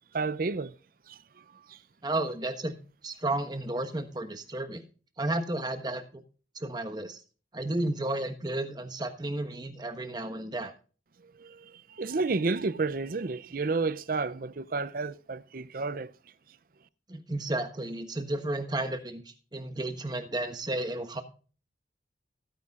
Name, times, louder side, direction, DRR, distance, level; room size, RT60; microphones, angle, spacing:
voice 1, 0.1-0.8 1.1-1.8 11.2-16.1, right 3 dB, 50° right, 0.5 m, -31 dB
voice 2, 2.0-2.7 3.0-4.8 5.2-6.2 6.6-7.2 7.5-10.7 17.1-19.2 19.5-21.2, right 2 dB, 25° right, 1.3 m, -32 dB
17.0 x 9.6 x 2.5 m
head